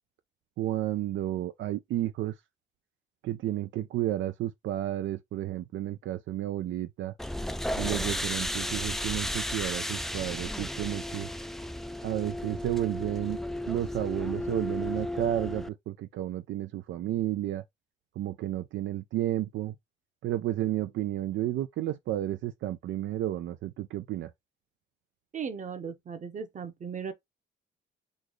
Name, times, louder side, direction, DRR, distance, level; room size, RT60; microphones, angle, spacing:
voice 1, 0.6-2.3 3.2-7.1 7.8-11.3 12.0-13.4 13.7-17.6 18.2-19.8 20.2-24.3, right 13 dB, 75° right, 0.4 m, -32 dB
sound 1, 7.2-15.7, left 1 dB, ahead, 0.3 m, -34 dB
voice 2, 25.3-27.1, right 6 dB, 40° right, 0.9 m, -37 dB
3.9 x 2.4 x 3.1 m
cardioid pair, 90°, 20 cm